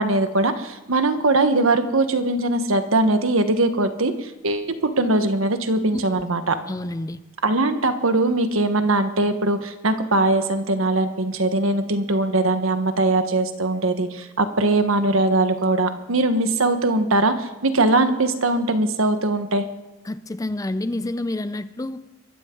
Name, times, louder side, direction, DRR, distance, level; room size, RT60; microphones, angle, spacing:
voice 1, 0.0-6.5 7.4-19.6, right 2 dB, 75° right, 8 dB, 1.4 m, -21 dB
voice 2, 6.7-7.2 20.1-22.1, left 1 dB, 15° left, 13 dB, 0.4 m, -29 dB
23.5 x 13.5 x 3.9 m, 1.0 s
head